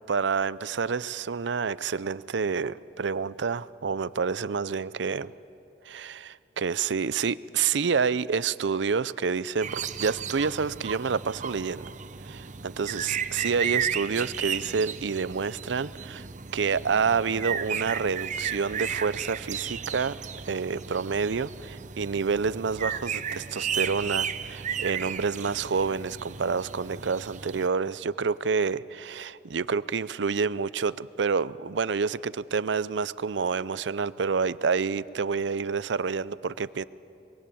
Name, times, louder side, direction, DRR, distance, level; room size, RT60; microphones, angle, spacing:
voice 1, 0.1-5.3 5.9-11.9 12.2-16.3 16.5-20.2 20.5-36.8, right 5 dB, 75° right, 18 dB, 0.5 m, -28 dB
sound 1, 9.6-27.7, right 7 dB, 40° right, 0.7 m, -34 dB
23.5 x 23.0 x 8.6 m, 2.9 s
head